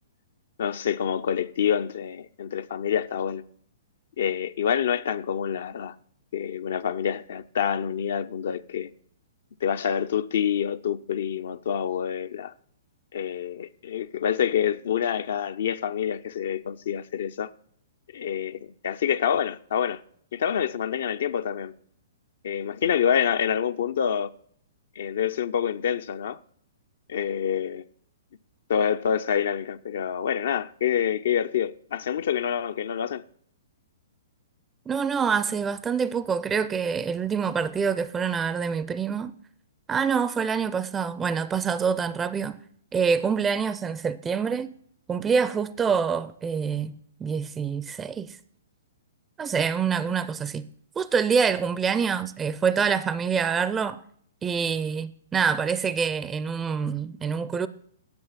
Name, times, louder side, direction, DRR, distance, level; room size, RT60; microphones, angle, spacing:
voice 1, 0.6-3.4 4.2-5.9 6.3-8.9 9.6-12.5 13.1-17.5 18.1-20.0 20.3-21.7 22.4-24.3 25.0-26.4 27.1-27.8 28.7-33.2, left 8 dB, 65° left, 0.4 m, -27 dB
voice 2, 34.9-39.4 39.9-42.6 42.9-44.7 45.1-48.4 49.4-50.7 51.0-54.0 54.4-57.7, right 6 dB, 15° right, 0.4 m, -26 dB
9.7 x 7.3 x 5.6 m
hypercardioid pair, 145°, 0 cm